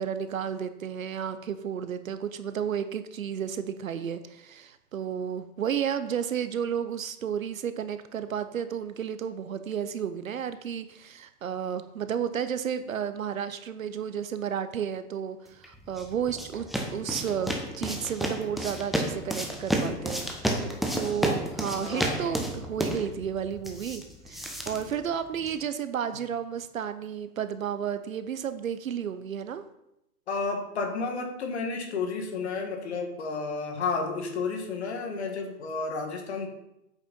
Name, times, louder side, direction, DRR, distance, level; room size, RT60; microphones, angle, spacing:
voice 1, 0.0-16.7 16.9-29.6, right 8 dB, 55° right, 11 dB, 0.7 m, -32 dB
sound 1, 15.6-25.6, equal, ahead, 0.3 m, -32 dB
voice 2, 21.8-22.3 30.3-36.5, left 4 dB, 40° left, 4 dB, 1.6 m, -31 dB
8.3 x 5.8 x 5.3 m, 0.84 s
hypercardioid pair, 170°, 49 cm